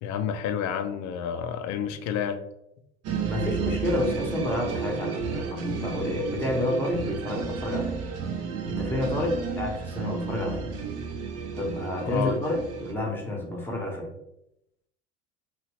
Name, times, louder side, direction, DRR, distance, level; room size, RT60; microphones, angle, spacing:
voice 1, 0.0-2.4 12.1-12.4, left 8 dB, 50° left, 8 dB, 0.5 m, -29 dB
sound 1, 3.0-12.9, right 6 dB, 40° right, 0.6 m, -32 dB
voice 2, 3.3-8.0 8.6-10.7 11.6-12.6 12.8-14.1, left 1 dB, 5° left, 1 dB, 1.0 m, -29 dB
2.9 x 2.7 x 3.0 m, 0.81 s
hypercardioid pair, 75°, 37 cm